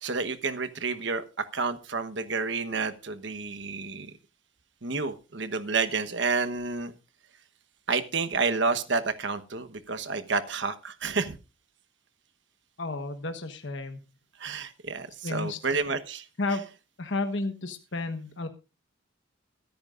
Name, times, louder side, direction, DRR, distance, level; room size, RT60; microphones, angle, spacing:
voice 1, 0.0-4.1 4.8-6.9 7.9-11.4 14.4-16.3, right 4 dB, 65° right, 10 dB, 1.1 m, -30 dB
voice 2, 12.8-14.0 15.2-15.6 16.4-16.6 17.0-18.5, left 2 dB, 70° left, 7 dB, 1.3 m, -32 dB
23.0 x 10.5 x 2.5 m, 0.30 s
head